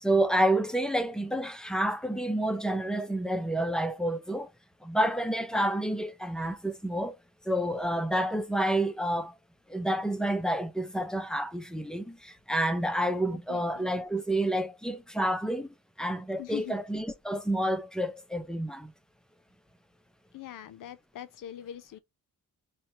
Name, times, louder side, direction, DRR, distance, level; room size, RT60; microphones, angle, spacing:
voice 1, 0.0-4.5 4.8-7.1 7.5-9.3 9.7-15.7 16.0-18.9, right 1 dB, ahead, 0.4 m, -29 dB
voice 2, 13.5-13.9 16.4-16.7 20.3-22.0, left 11 dB, 70° left, 0.6 m, -42 dB
4.3 x 2.2 x 2.6 m
wide cardioid pair, 145°, 34 cm